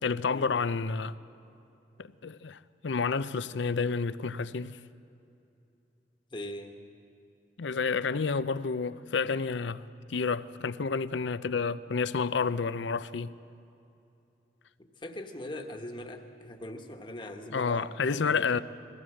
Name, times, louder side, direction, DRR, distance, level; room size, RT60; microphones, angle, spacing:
voice 1, 0.0-1.2 2.0-4.8 7.6-9.8 10.1-13.3 17.5-18.6, left 5 dB, 85° left, 0.6 m, -30 dB
voice 2, 6.3-6.8 14.8-18.6, left 1 dB, 25° left, 1.3 m, -41 dB
21.5 x 16.0 x 7.7 m
head